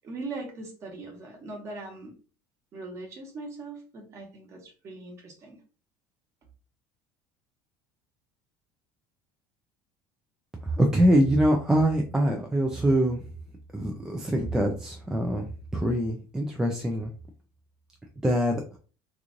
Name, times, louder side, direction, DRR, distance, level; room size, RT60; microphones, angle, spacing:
voice 1, 0.0-2.2 2.7-5.6, right 3 dB, 30° right, 2 dB, 1.2 m, -40 dB
voice 2, 10.6-13.2 13.7-17.1 18.2-18.6, right 1 dB, 5° right, 1 dB, 0.4 m, -24 dB
3.0 x 2.5 x 3.7 m, 0.37 s
cardioid pair, 160°, 9 cm